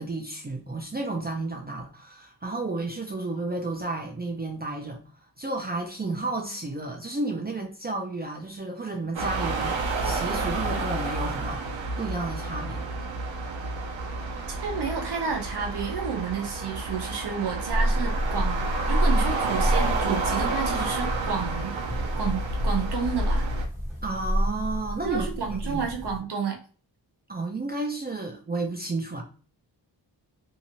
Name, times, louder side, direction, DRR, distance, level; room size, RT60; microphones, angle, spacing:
voice 1, 0.0-5.0 5.4-9.8 10.0-12.8 24.0-25.9 27.3-29.2, right 2 dB, 25° right, 0.4 m, -32 dB
sound 1, 9.1-23.7, right 3 dB, 85° right, 0.7 m, -30 dB
voice 2, 14.6-21.7 22.2-23.5 25.0-26.6, right 6 dB, 60° right, 0.9 m, -31 dB
sound 2, 17.7-26.2, equal, 5° right, 1.3 m, -28 dB
2.7 x 2.4 x 2.9 m
wide cardioid pair, 175°, 45 cm